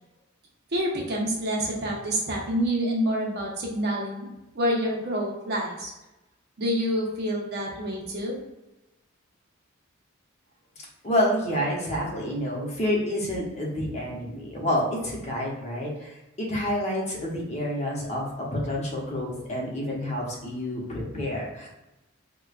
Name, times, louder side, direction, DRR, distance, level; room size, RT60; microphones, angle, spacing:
voice 1, 0.7-4.3 4.5-5.9 6.6-8.4, equal, 50° right, -2 dB, 0.8 m, -27 dB
voice 2, 11.0-21.7, equal, 35° left, -3 dB, 0.8 m, -28 dB
4.6 x 2.2 x 2.4 m, 0.99 s
head